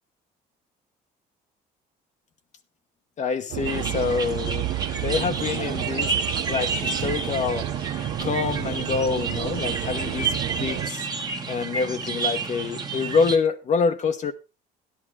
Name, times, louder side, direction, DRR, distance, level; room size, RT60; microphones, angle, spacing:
voice 1, 3.2-6.1 6.5-7.7 8.2-11.1 11.5-14.3, left 5 dB, 45° left, 1.1 m, -26 dB
sound 1, 3.5-10.9, right 14 dB, 75° right, 0.7 m, -31 dB
sound 2, 3.6-13.4, right 5 dB, 25° right, 1.5 m, -30 dB
11.5 x 11.0 x 3.6 m
cardioid pair, 110°, 17 cm